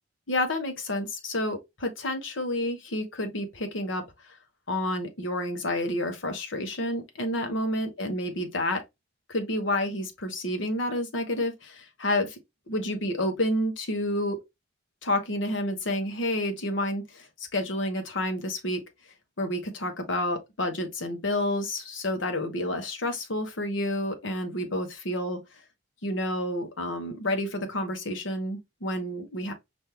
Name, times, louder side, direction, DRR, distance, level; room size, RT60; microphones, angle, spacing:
voice 1, 0.3-4.0 4.7-8.8 9.3-12.4 12.7-14.4 15.0-17.3 17.5-18.8 19.4-25.4 26.0-29.5, left 1 dB, 80° left, 1.1 m, -29 dB
5.2 x 2.7 x 2.9 m
head